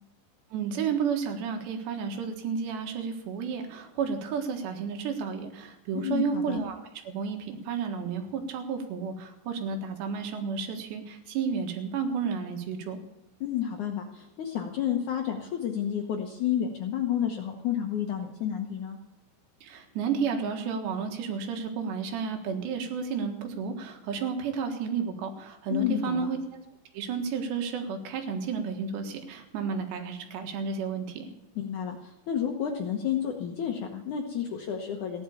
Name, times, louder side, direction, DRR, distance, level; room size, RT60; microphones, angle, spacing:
voice 1, 0.5-6.8 7.1-13.0 19.6-26.6 26.9-31.3, right 6 dB, 80° right, 5 dB, 3.8 m, -32 dB
voice 2, 5.9-6.6 13.4-19.0 25.7-26.3 31.6-35.2, left 9 dB, 70° left, 3 dB, 1.9 m, -30 dB
15.5 x 10.5 x 7.1 m, 0.93 s
omnidirectional pair, 4.9 m